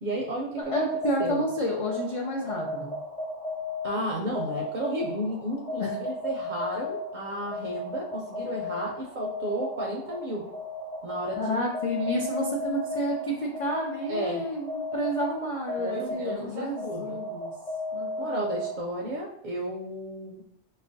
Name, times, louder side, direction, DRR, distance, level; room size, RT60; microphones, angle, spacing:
voice 1, 0.0-0.9 1.2-1.4 3.8-10.4 11.0-11.6 14.1-14.4 15.8-17.2 18.2-20.4, right 1 dB, 55° right, -2 dB, 0.6 m, -33 dB
voice 2, 0.6-3.0 5.8-5.9 11.4-17.5 17.9-18.5, equal, 55° left, -1 dB, 0.3 m, -30 dB
sound 1, 0.6-19.1, left 1 dB, 40° left, 0.7 m, -35 dB
4.7 x 2.1 x 2.6 m, 0.68 s
omnidirectional pair, 1.2 m